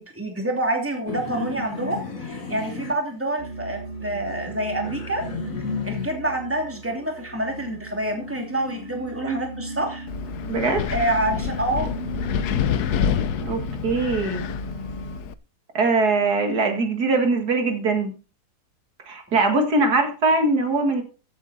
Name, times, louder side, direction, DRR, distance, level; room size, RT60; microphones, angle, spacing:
voice 1, 0.0-5.2 5.8-10.1 10.9-12.0, right 1 dB, 10° right, 2 dB, 2.8 m, -27 dB
sound 1, 1.1-3.7 4.1-6.3 6.8-8.8, left 5 dB, 60° left, 2.3 m, -34 dB
sound 2, 3.4-15.2, right 1 dB, 35° left, 2.0 m, -36 dB
Wind, 10.1-15.3, left 8 dB, 85° left, 1.3 m, -27 dB
voice 2, 10.5-10.8 13.4-14.5 15.7-18.1 19.1-21.0, right 3 dB, 85° right, 5 dB, 2.6 m, -22 dB
14.5 x 8.3 x 4.2 m, 0.35 s
omnidirectional pair, 1.6 m